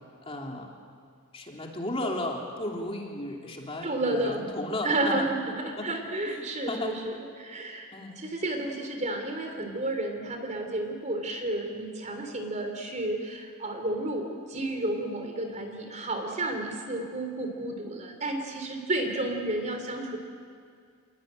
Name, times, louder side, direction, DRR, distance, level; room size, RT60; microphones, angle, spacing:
voice 1, 0.2-0.7 1.3-5.3 5.8-6.0 6.2-7.0 7.9-8.3, left 1 dB, 25° left, 0 dB, 3.1 m, -34 dB
voice 2, 3.8-4.4 4.8-7.9 8.2-20.2, right 2 dB, 35° right, 4 dB, 3.6 m, -31 dB
28.5 x 21.5 x 9.0 m, 2.2 s
head